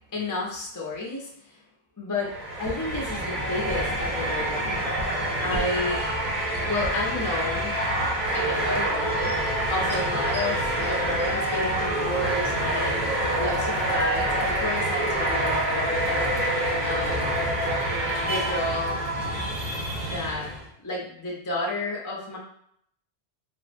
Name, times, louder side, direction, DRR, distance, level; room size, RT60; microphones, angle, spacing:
voice 1, 0.1-1.6 2.0-4.9 5.4-6.0 6.7-7.7 8.3-13.0 13.4-16.4 16.8-17.4 18.2-19.0 20.0-20.5 20.8-22.4, left 2 dB, 25° left, -3 dB, 0.4 m, -31 dB
sound 1, 2.2-20.7, right 1 dB, 45° right, 0.7 m, -26 dB
3.5 x 2.0 x 2.5 m, 0.68 s
omnidirectional pair, 1.1 m